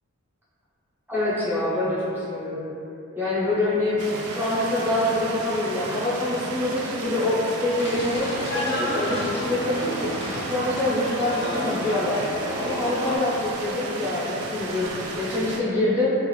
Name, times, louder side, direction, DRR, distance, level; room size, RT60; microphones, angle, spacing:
voice 1, 1.1-2.7 3.1-9.9 10.4-12.2 12.5-16.1, left 2 dB, 10° right, -10 dB, 0.6 m, -25 dB
sound 1, 4.0-15.6, right 2 dB, 85° right, 0.3 m, -34 dB
sound 2, 7.8-13.2, left 1 dB, 50° left, 0.5 m, -31 dB
2.5 x 2.4 x 3.0 m, 2.8 s
head